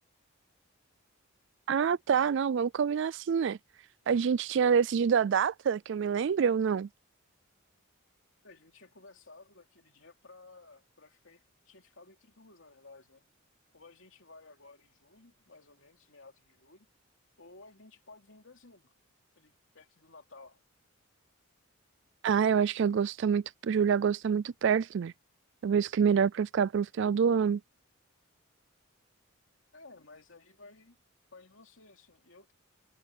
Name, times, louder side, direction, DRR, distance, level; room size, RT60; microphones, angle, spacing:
voice 1, 1.7-3.6 4.1-6.9 22.2-25.1 25.6-27.6, right 7 dB, 60° right, 0.3 m, -26 dB
voice 2, 8.4-13.2 13.7-16.9 17.4-18.9 19.3-20.6 29.7-31.0 31.3-32.5, left 3 dB, 65° left, 3.3 m, -55 dB
head